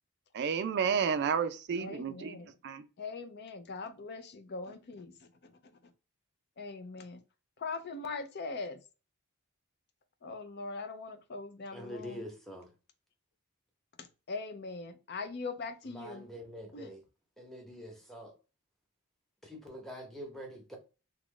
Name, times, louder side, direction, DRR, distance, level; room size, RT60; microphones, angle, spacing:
voice 1, 0.3-2.4 2.6-2.9, right 6 dB, 50° right, 0.3 m, -31 dB
voice 2, 1.8-2.5 3.0-5.5 5.8-5.9 6.6-7.2 7.6-8.8 10.2-12.2 14.0-16.3 16.7-16.9, left 3 dB, 50° left, 0.5 m, -41 dB
voice 3, 11.7-12.7 15.9-17.0 17.4-18.3 19.4-20.8, equal, ahead, 0.9 m, -45 dB
2.9 x 2.4 x 3.7 m
head